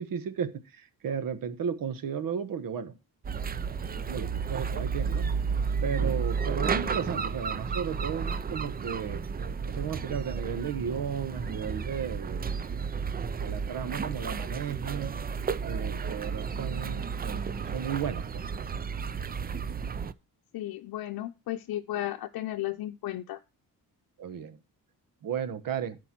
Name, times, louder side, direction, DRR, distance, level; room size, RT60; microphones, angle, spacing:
voice 1, 0.0-3.0 4.1-5.3 5.8-9.2 9.7-12.5 13.1-15.2 15.6-17.4 17.7-18.4 24.2-24.6 25.2-26.0, right 7 dB, 65° right, 12 dB, 1.3 m, -34 dB
sound 1, 3.2-20.1, right 5 dB, 25° right, 0.5 m, -32 dB
voice 2, 20.5-23.4, left 14 dB, 75° left, 4 dB, 0.7 m, -34 dB
12.5 x 4.6 x 6.0 m, 0.29 s
cardioid pair, 130°, 36 cm